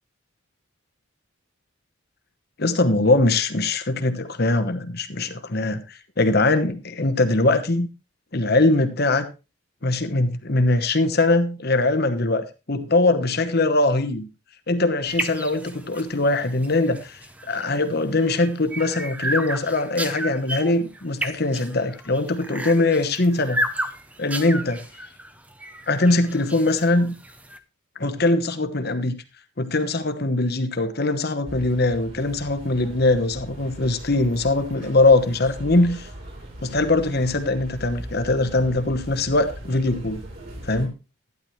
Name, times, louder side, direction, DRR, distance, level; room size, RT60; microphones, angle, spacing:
voice 1, 2.6-7.9 8.3-9.3 9.8-14.3 14.7-17.2 17.5-23.6 24.2-24.8 25.9-27.1 28.0-29.2 29.6-36.1 36.6-40.2 40.6-40.9, left 2 dB, 50° left, 9 dB, 1.1 m, -21 dB
sound 1, 15.1-27.6, right 1 dB, 5° right, 0.7 m, -33 dB
sound 2, 31.4-40.9, right 1 dB, 45° right, 3.6 m, -39 dB
12.0 x 10.5 x 3.2 m, 0.28 s
head